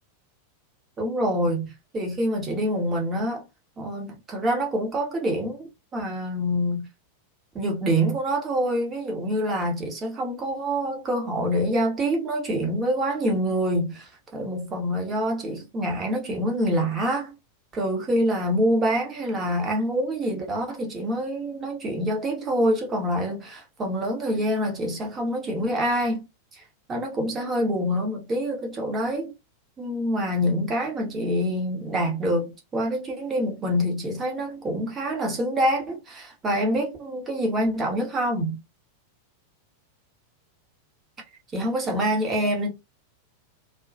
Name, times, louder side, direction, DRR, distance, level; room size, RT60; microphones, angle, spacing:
voice 1, 1.0-3.4 3.8-5.6 5.9-6.9 7.5-17.3 17.7-26.2 26.5-26.6 26.9-29.3 29.8-38.6 41.5-42.7, equal, 20° right, 0.9 m, -26 dB
2.2 x 2.1 x 2.6 m
figure-of-eight pair, 90°, 0 cm